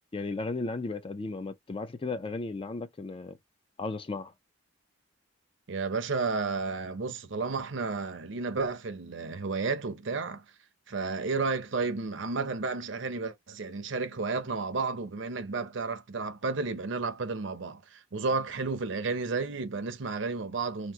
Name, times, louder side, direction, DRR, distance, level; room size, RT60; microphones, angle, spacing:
voice 1, 0.1-3.4 3.8-4.3, left 3 dB, 25° left, 0.3 m, -35 dB
voice 2, 5.7-10.4 10.9-20.9, right 4 dB, 60° right, 0.6 m, -32 dB
2.9 x 2.0 x 3.4 m
head